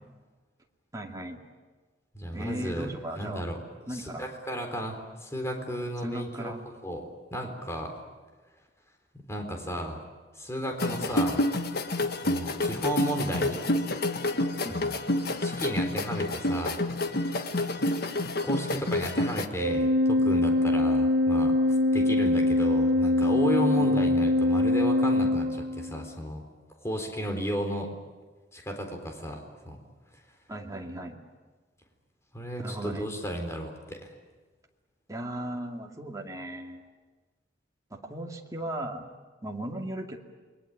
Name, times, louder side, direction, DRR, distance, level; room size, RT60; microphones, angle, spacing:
voice 1, 0.9-1.4 2.3-3.4 3.9-4.2 6.0-6.6 10.9-11.1 14.6-14.8 30.5-31.2 32.6-33.1 35.1-36.8 37.9-40.2, right 1 dB, 20° right, 1 dB, 2.4 m, -37 dB
voice 2, 2.1-2.9 3.2-3.6 3.9-6.5 6.8-7.9 9.1-10.0 10.4-11.4 12.2-13.6 14.0-14.1 14.7-15.0 15.4-16.8 18.4-21.5 21.9-26.4 26.8-27.9 28.5-29.8 32.3-34.1, equal, 15° left, 3 dB, 4.0 m, -33 dB
sound 1, 10.8-19.5, left 1 dB, 60° left, 1.5 m, -28 dB
Organ, 19.6-26.1, left 2 dB, 75° right, 1.5 m, -23 dB
28.5 x 22.0 x 8.9 m, 1.3 s
head